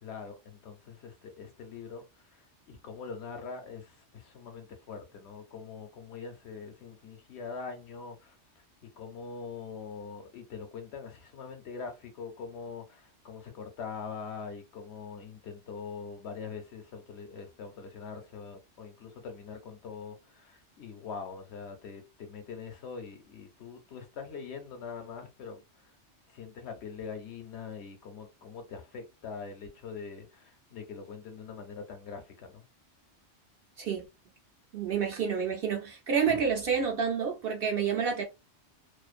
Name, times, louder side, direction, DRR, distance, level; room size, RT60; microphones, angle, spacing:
voice 1, 0.0-8.3 9.0-25.9 26.3-32.6, left 5 dB, 65° left, 0.9 m, -43 dB
voice 2, 34.7-38.2, right 6 dB, 60° right, 0.7 m, -29 dB
2.5 x 2.0 x 2.4 m
omnidirectional pair, 1.2 m